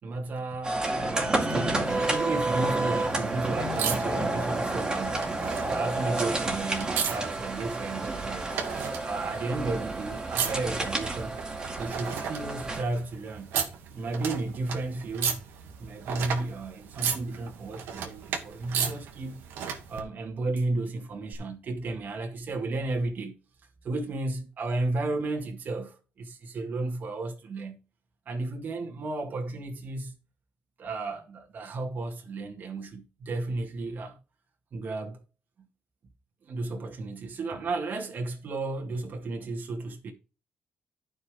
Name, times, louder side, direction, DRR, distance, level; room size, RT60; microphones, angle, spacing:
voice 1, 0.0-5.2 5.7-8.6 9.0-11.4 11.8-13.5 13.9-15.4 15.8-19.5 19.9-23.4 23.8-27.8 28.3-30.1 30.8-34.2 34.7-35.2 36.4-40.1, right 3 dB, 50° right, 2.0 m, -33 dB
sound 1, 0.6-12.8, right 2 dB, 20° right, 2.1 m, -30 dB
sound 2, 1.8-20.0 21.3-21.4, right 7 dB, 90° right, 1.7 m, -36 dB
11.0 x 5.5 x 4.9 m
cardioid pair, 90°, 4 cm